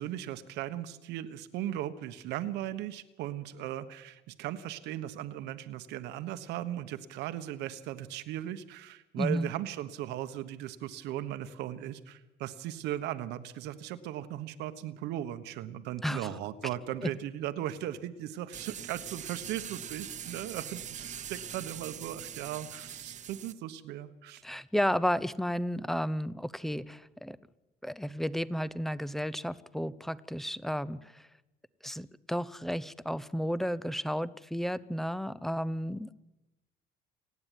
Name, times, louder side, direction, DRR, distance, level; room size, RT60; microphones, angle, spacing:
voice 1, 0.0-24.4, right 12 dB, 90° right, 11 dB, 1.3 m, -37 dB
voice 2, 9.1-9.5 16.0-16.3 17.0-17.1 24.4-27.4 27.8-31.3 31.8-36.1, equal, ahead, 17 dB, 0.7 m, -32 dB
sound 1, 18.5-23.5, right 9 dB, 45° right, 1.1 m, -42 dB
29.0 x 9.7 x 9.3 m, 1.0 s
cardioid pair, 110°, 17 cm